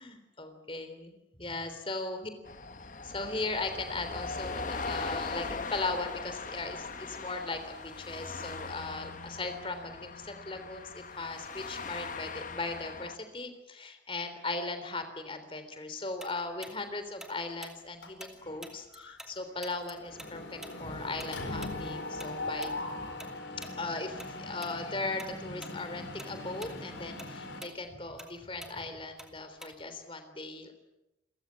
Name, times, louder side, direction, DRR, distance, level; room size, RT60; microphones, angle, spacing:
voice 1, 0.0-2.3 3.0-22.7 23.8-30.7, left 3 dB, 30° left, 9 dB, 3.4 m, -38 dB
sound 1, 2.4-13.2, left 4 dB, 45° left, 1.3 m, -40 dB
Tick-tock, 16.2-19.3 19.6-24.3 24.6-24.8 25.2-25.8 26.1-30.0, right 1 dB, 5° right, 2.7 m, -48 dB
Mechanisms, 18.0-18.6 19.0-19.2 19.4-27.6, left 2 dB, 85° left, 4.5 m, -40 dB
29.0 x 15.5 x 9.8 m, 0.95 s
head